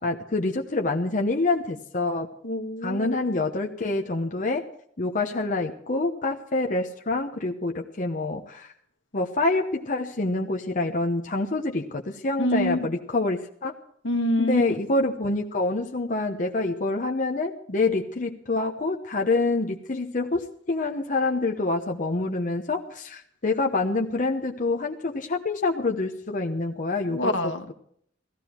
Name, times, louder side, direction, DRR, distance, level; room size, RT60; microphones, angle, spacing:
voice 1, 0.0-2.3 2.8-4.6 5.0-8.7 9.1-13.7 14.4-27.3, left 2 dB, 45° left, 2 dB, 1.0 m, -26 dB
voice 2, 2.4-3.2 12.4-12.9 14.0-14.8 27.1-27.6, left 1 dB, 70° left, 6 dB, 1.6 m, -26 dB
17.0 x 14.5 x 4.5 m, 0.65 s
head